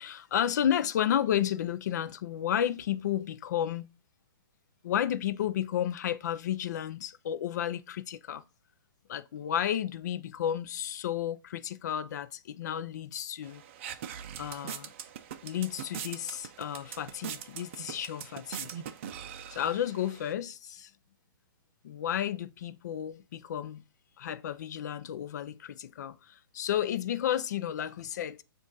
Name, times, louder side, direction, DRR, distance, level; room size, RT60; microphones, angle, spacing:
voice 1, 0.0-3.9 4.8-8.4 9.1-13.6 14.4-14.9 15.4-18.7 19.5-20.9 21.8-23.8 24.2-28.4, left 10 dB, 50° left, 0.5 m, -32 dB
sound 1, 13.4-20.3, right 9 dB, 35° right, 0.5 m, -42 dB
7.4 x 2.5 x 5.3 m
hypercardioid pair, 165°, 12 cm